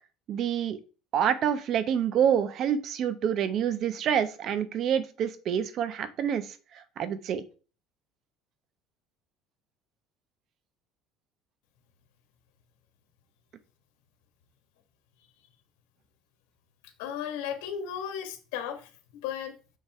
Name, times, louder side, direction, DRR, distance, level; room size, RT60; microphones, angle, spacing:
voice 1, 0.3-0.8 1.1-6.4 7.0-7.4, right 9 dB, 45° right, 1.0 m, -27 dB
voice 2, 17.0-18.9 19.2-19.5, left 9 dB, 90° left, 1.9 m, -34 dB
6.8 x 5.9 x 4.5 m
cardioid pair, 140°, 0 cm